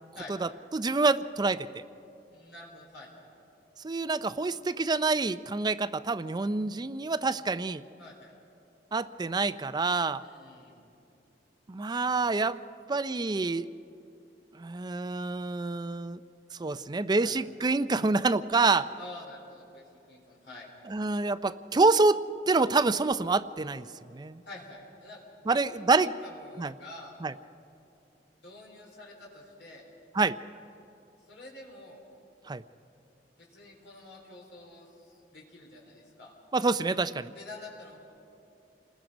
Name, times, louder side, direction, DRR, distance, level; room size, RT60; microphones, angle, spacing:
voice 1, 0.4-1.8 3.8-7.8 8.9-10.2 11.7-12.6 12.9-13.7 14.6-16.2 16.6-18.9 20.9-24.4 25.5-26.1 26.6-26.7 27.2-27.3 30.1-30.4 32.5-32.6 36.5-37.3, right 3 dB, 25° right, 14 dB, 0.4 m, -27 dB
voice 2, 2.3-3.2 8.0-8.3 10.2-10.8 17.2-17.3 19.0-20.7 24.5-25.2 25.5-25.7 25.9-27.1 28.4-29.8 31.3-32.0 33.4-36.3 37.3-38.0, left 2 dB, 80° left, -3 dB, 4.0 m, -48 dB
29.0 x 20.0 x 5.2 m, 2.8 s
head